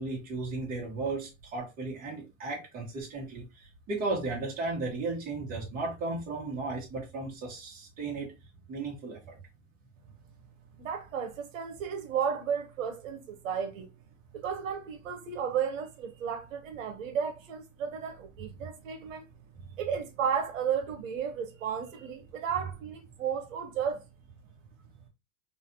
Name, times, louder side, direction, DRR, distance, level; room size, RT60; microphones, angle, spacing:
voice 1, 0.0-3.4 3.9-8.3 8.7-9.2, right 3 dB, 20° right, 1.3 m, -35 dB
voice 2, 10.8-13.9 14.3-19.2 19.8-24.0, right 7 dB, 80° right, 0.9 m, -33 dB
3.3 x 2.4 x 2.7 m
supercardioid pair, 145°, 39 cm